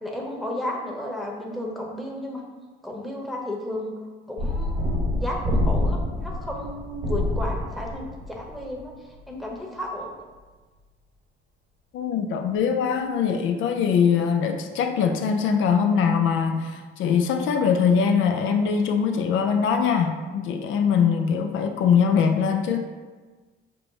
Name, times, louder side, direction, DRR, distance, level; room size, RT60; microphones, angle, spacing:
voice 1, 0.0-2.4 2.8-3.9 4.3-8.9 9.3-10.1, left 1 dB, ahead, -2 dB, 0.9 m, -33 dB
sound 1, 4.4-9.2, left 1 dB, 45° right, 0.9 m, -27 dB
voice 2, 11.9-22.9, left 6 dB, 80° left, 4 dB, 0.4 m, -22 dB
5.3 x 2.1 x 4.6 m, 1.3 s
cardioid pair, 90°, 20 cm